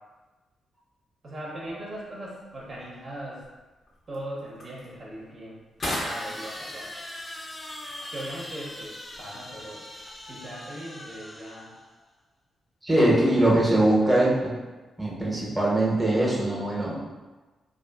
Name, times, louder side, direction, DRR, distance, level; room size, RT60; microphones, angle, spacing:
voice 1, 1.2-3.4 4.1-6.9 8.1-9.9 10.3-11.8, right 1 dB, 55° right, -5 dB, 0.6 m, -39 dB
sound 1, 1.5-10.7, left 1 dB, 55° left, 0.7 m, -42 dB
sound 2, 5.8-11.9, left 1 dB, 25° left, 0.4 m, -41 dB
voice 2, 12.8-14.5 15.0-17.0, right 1 dB, 15° right, -5 dB, 0.8 m, -22 dB
2.4 x 2.4 x 2.3 m, 1.2 s
supercardioid pair, 45°, 0 cm